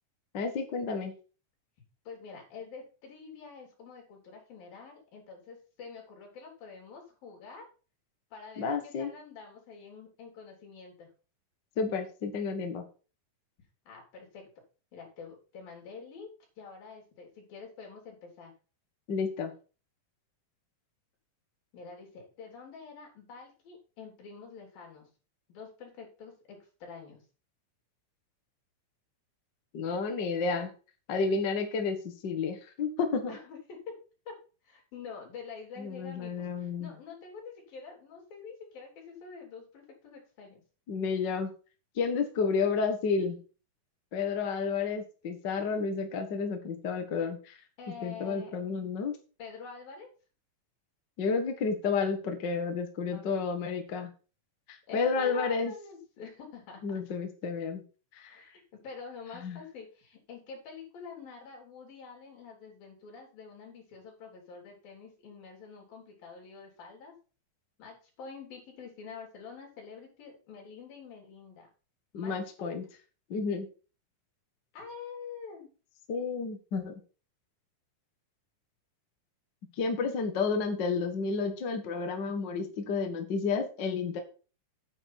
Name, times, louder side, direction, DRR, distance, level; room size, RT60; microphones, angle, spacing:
voice 1, 0.3-1.1 8.6-9.1 11.8-12.8 19.1-19.5 29.7-30.7 31.1-33.4 35.8-36.9 40.9-41.5 41.9-43.4 44.1-47.6 48.0-49.2 51.2-54.1 54.7-55.7 56.8-57.8 58.1-58.4 59.3-59.6 72.1-72.8 73.3-73.7 76.1-77.0 79.8-84.2, left 5 dB, 45° left, 5 dB, 1.5 m, -31 dB
voice 2, 2.1-7.7 8.3-11.1 13.9-14.5 14.9-16.3 16.6-18.5 21.7-25.1 25.5-27.2 33.3-34.0 34.3-34.4 34.6-40.6 47.8-48.6 49.4-50.1 53.1-53.4 54.9-57.0 58.3-67.1 67.8-71.7 72.1-72.8 74.7-75.7, left 5 dB, 80° left, 0 dB, 5.4 m, -47 dB
9.2 x 9.0 x 4.4 m, 0.35 s
omnidirectional pair, 4.1 m